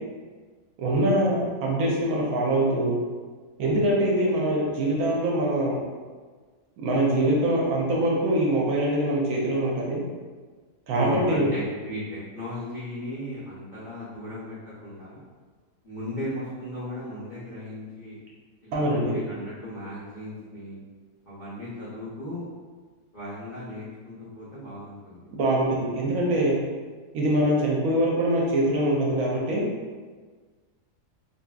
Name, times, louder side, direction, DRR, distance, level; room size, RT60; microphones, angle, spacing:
voice 1, 0.8-3.0 3.6-5.8 6.8-10.0 10.9-11.5 18.7-19.1 25.4-26.6 27.1-29.6, right 1 dB, 70° right, -3 dB, 0.9 m, -23 dB
voice 2, 10.9-15.2 15.8-18.2 18.6-20.8 21.2-22.4 23.1-25.2, left 1 dB, 60° left, -11 dB, 0.5 m, -37 dB
2.7 x 2.5 x 2.3 m, 1.5 s
omnidirectional pair, 1.7 m